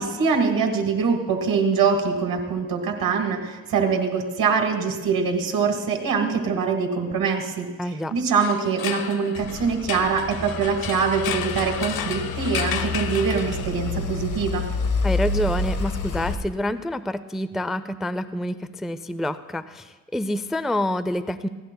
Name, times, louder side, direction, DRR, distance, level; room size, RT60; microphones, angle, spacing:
voice 1, 0.0-7.7 8.1-14.6, right 5 dB, 70° right, 4 dB, 1.5 m, -23 dB
voice 2, 7.8-8.1 15.0-21.5, left 1 dB, ahead, 13 dB, 0.4 m, -27 dB
sound 1, 8.3-14.0, left 8 dB, 85° left, 0.8 m, -33 dB
sound 2, 9.3-16.3, left 3 dB, 60° left, 1.4 m, -29 dB
19.0 x 16.0 x 2.2 m, 1.3 s
cardioid pair, 75°, 35 cm